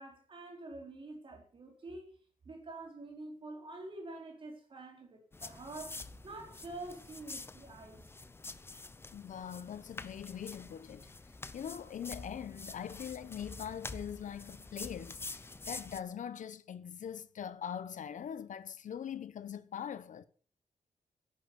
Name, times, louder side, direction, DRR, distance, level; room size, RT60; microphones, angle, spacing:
voice 1, 0.0-2.2 2.4-8.1, right 2 dB, 40° right, 4.3 m, -47 dB
sound 1, 5.3-16.0, left 3 dB, 15° left, 0.7 m, -47 dB
voice 2, 9.1-11.1 11.5-20.2, left 8 dB, 75° left, 1.0 m, -42 dB
11.5 x 10.0 x 7.0 m
wide cardioid pair, 170°, 13 cm